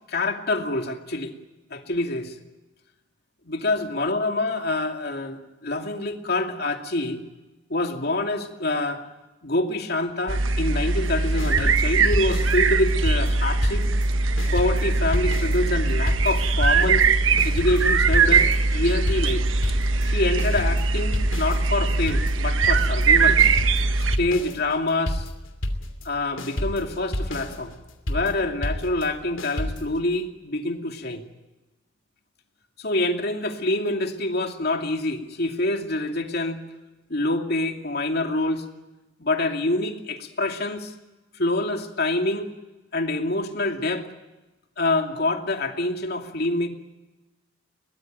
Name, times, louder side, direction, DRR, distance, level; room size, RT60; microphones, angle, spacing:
voice 1, 0.1-1.3 1.7-2.3 3.4-7.2 7.7-9.0 9.4-13.9 14.5-17.0 17.4-19.4 20.0-23.4 24.0-25.3 26.0-27.7 28.1-31.2 32.8-36.6 37.1-38.6 39.2-40.9 41.3-42.5 42.9-44.1 44.8-46.7, left 2 dB, 55° left, 4 dB, 2.6 m, -26 dB
sound 1, 10.3-24.2, right 4 dB, 85° right, 1.2 m, -21 dB
sound 2, 11.4-14.1 14.4-30.0, left 1 dB, 80° left, 2.9 m, -30 dB
22.5 x 19.0 x 9.1 m, 1.1 s
head